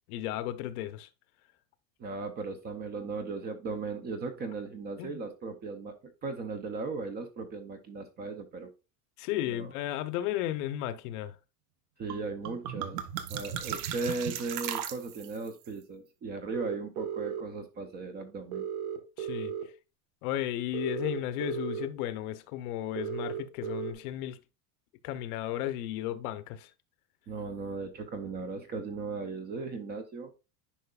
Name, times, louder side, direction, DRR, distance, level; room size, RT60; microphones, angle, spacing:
voice 1, 0.1-1.1 5.0-5.2 9.2-11.4 19.2-19.5 20.2-24.4 25.0-26.7, left 13 dB, 65° left, 0.9 m, -34 dB
voice 2, 2.0-5.9 6.2-8.7 9.5-9.7 12.0-13.0 13.3-18.6 27.3-30.3, right 4 dB, 20° right, 0.5 m, -37 dB
sound 1, 12.1-12.2 12.5-15.5, right 10 dB, 75° right, 1.1 m, -36 dB
sound 2, 16.5-17.4 18.5-19.6 20.7-21.9 23.0-23.9, right 9 dB, 45° right, 1.4 m, -35 dB
10.5 x 4.8 x 2.3 m
cardioid pair, 165°, 47 cm